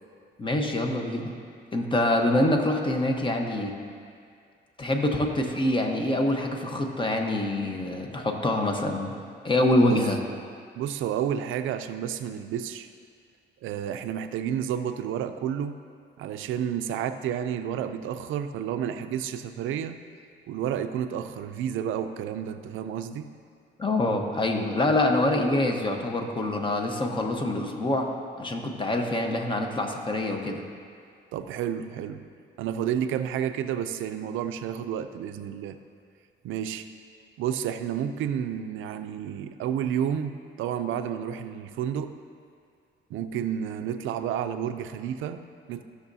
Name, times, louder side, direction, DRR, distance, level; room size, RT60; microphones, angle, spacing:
voice 1, 0.4-1.4 1.7-3.7 4.8-9.1 9.4-10.2 23.8-28.1 28.4-30.6, left 1 dB, 25° left, 3 dB, 1.1 m, -25 dB
voice 2, 10.8-12.9 13.6-15.8 16.2-20.0 20.5-23.3 31.3-32.2 32.6-35.8 36.4-36.9 37.4-42.1 43.1-45.8, right 9 dB, 90° right, 9 dB, 0.5 m, -30 dB
14.5 x 6.4 x 2.7 m, 2.2 s
cardioid pair, 90°, 20 cm